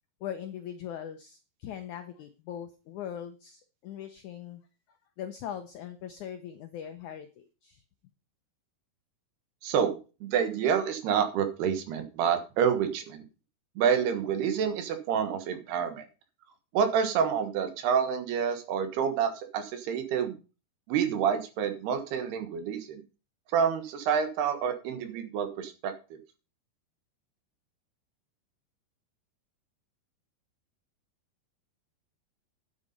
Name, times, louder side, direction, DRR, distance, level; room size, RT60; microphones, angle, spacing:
voice 1, 0.2-4.6 4.9-7.8, left 9 dB, 85° left, 7 dB, 1.7 m, -41 dB
voice 2, 9.6-13.2 13.8-16.1 16.7-20.4 20.9-23.0 23.5-25.9, right 7 dB, 75° right, 8 dB, 3.4 m, -28 dB
9.9 x 8.0 x 5.4 m, 0.32 s
omnidirectional pair, 4.7 m